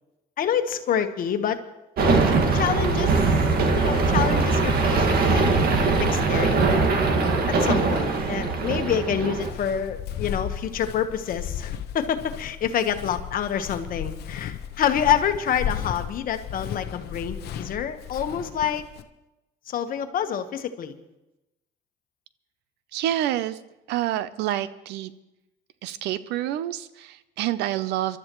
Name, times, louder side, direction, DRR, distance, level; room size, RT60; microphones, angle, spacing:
voice 1, 0.4-1.6 2.5-3.1 3.8-5.6 6.0-6.8 7.5-18.8 19.7-20.9, left 8 dB, 55° left, 7 dB, 1.3 m, -27 dB
sound 1, 2.0-9.5, right 3 dB, 60° right, 2.0 m, -21 dB
Walk footsteps, 9.4-19.0, left 9 dB, 70° left, 0.8 m, -35 dB
voice 2, 22.9-23.6 23.9-25.1 25.8-28.2, right 12 dB, 85° right, 15 dB, 0.7 m, -27 dB
25.5 x 12.5 x 3.1 m, 0.95 s
cardioid pair, 110°, 17 cm